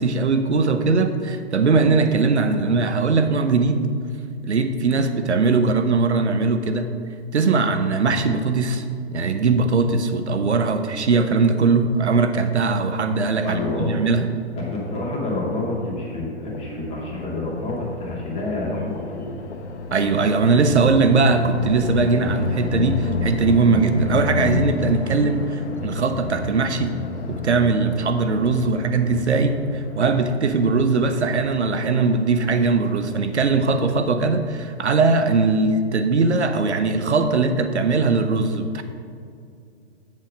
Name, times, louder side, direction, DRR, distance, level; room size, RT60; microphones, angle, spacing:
voice 1, 0.0-3.9 4.4-6.9 7.3-8.8 9.1-14.3 19.9-26.9 27.3-38.8, right 4 dB, 80° right, 9 dB, 0.8 m, -20 dB
voice 2, 13.4-13.9 14.5-19.3, left 2 dB, 20° left, -4 dB, 2.3 m, -28 dB
sound 1, 16.4-34.1, left 5 dB, 75° left, 1.0 m, -31 dB
7.6 x 7.5 x 5.0 m, 2.4 s
figure-of-eight pair, 120°, 34 cm